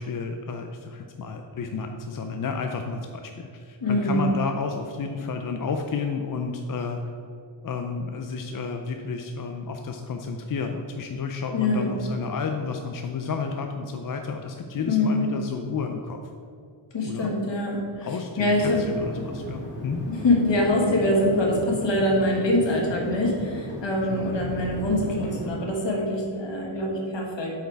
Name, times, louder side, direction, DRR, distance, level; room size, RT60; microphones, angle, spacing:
voice 1, 0.0-7.0 7.6-16.2 17.0-17.4 18.0-20.0 24.1-24.5, left 5 dB, 45° left, 4 dB, 0.4 m, -31 dB
voice 2, 3.8-4.2 11.5-11.9 14.9-15.3 16.9-18.1 18.4-18.8 20.1-27.5, left 1 dB, 65° left, -1 dB, 1.6 m, -24 dB
sound 1, 18.5-25.5, equal, 25° left, 1.8 m, -36 dB
8.0 x 4.7 x 4.5 m, 2.4 s
wide cardioid pair, 160°, 48 cm